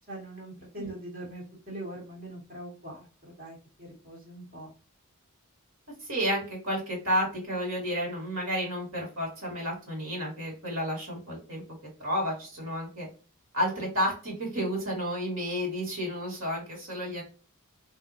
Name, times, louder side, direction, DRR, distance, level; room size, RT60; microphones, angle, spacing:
voice 1, 0.1-4.7, right 1 dB, 45° right, -4 dB, 1.5 m, -42 dB
voice 2, 6.0-11.6 12.0-13.1 13.5-17.2, equal, 65° right, -2 dB, 2.0 m, -31 dB
3.9 x 2.8 x 2.6 m, 0.37 s
head